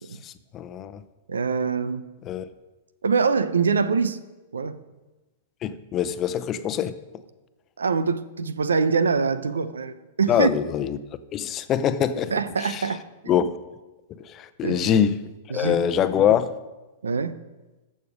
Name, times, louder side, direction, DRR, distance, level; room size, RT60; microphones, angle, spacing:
voice 1, 0.2-1.0 2.3-2.4 5.6-7.0 10.3-11.0 11.3-12.3 12.6-12.9 13.3-13.6 14.2-15.2 15.5-16.5, left 9 dB, 30° left, 12 dB, 0.7 m, -24 dB
voice 2, 1.3-2.1 3.0-4.2 4.5-4.8 7.8-10.5 12.3-13.0 14.6-15.0 15.5-15.8 17.0-17.4, right 5 dB, 80° right, 14 dB, 0.7 m, -24 dB
14.5 x 6.6 x 5.2 m, 1.1 s
hypercardioid pair, 110°, 0 cm